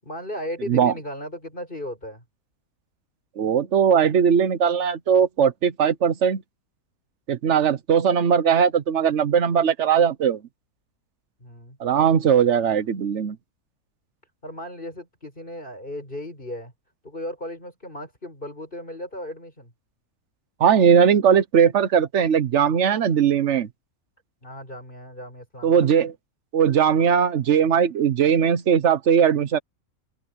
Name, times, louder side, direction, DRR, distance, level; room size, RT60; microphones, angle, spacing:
voice 1, 0.0-2.2 11.4-11.8 14.4-16.7 17.0-19.7 24.4-25.9, left 1 dB, 35° left, 8.0 m, -36 dB
voice 2, 3.4-6.4 7.3-10.4 11.8-13.4 20.6-23.7 25.6-26.1 26.5-29.6, right 7 dB, 55° right, 1.2 m, -19 dB
open air
omnidirectional pair, 1.5 m